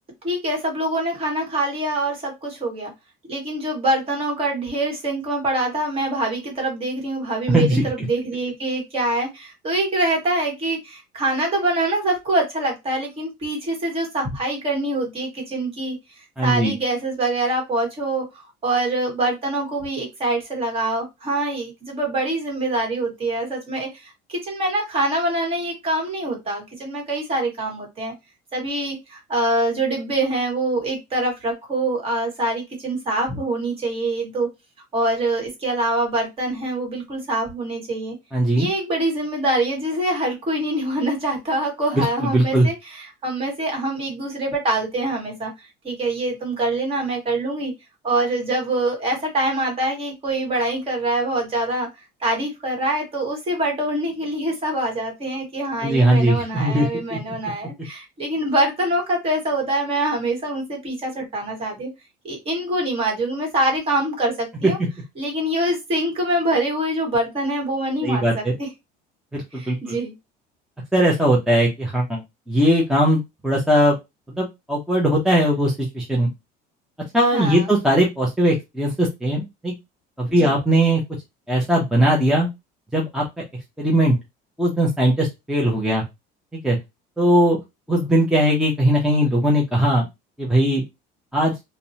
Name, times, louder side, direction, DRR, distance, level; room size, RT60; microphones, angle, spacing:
voice 1, 0.2-2.9 3.3-16.0 16.4-18.3 18.6-28.1 28.5-34.5 34.9-38.2 38.6-47.7 48.0-51.9 52.2-61.9 62.2-64.8 65.2-68.7 69.5-70.1 77.3-77.7 80.3-80.5, right 1 dB, 30° right, 1 dB, 1.2 m, -24 dB
voice 2, 7.5-8.1 16.4-16.7 38.3-38.7 42.0-42.7 55.8-57.2 68.0-68.5 69.3-70.0 70.9-72.2 72.5-74.0 74.4-76.3 77.1-79.7 80.2-81.0 81.5-82.5 82.9-83.2 83.8-84.2 84.6-86.0 86.5-86.8 87.2-87.6 87.9-90.1 90.4-90.8 91.3-91.5, right 1 dB, 5° right, -3 dB, 0.5 m, -19 dB
2.7 x 2.0 x 2.7 m, 0.21 s
cardioid pair, 150°, 19 cm